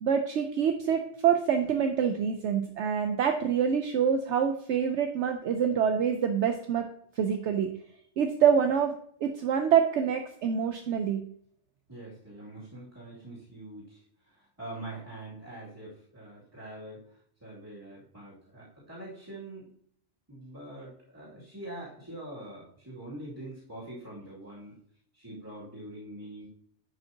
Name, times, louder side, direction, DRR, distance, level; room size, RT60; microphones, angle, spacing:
voice 1, 0.0-6.8 7.2-7.7 8.2-8.9 9.2-11.2, right 7 dB, 70° right, 6 dB, 0.9 m, -26 dB
voice 2, 11.9-19.7 20.3-24.7 25.1-26.5, right 1 dB, 15° right, -8 dB, 2.4 m, -44 dB
10.0 x 5.2 x 2.8 m, 0.64 s
omnidirectional pair, 1.3 m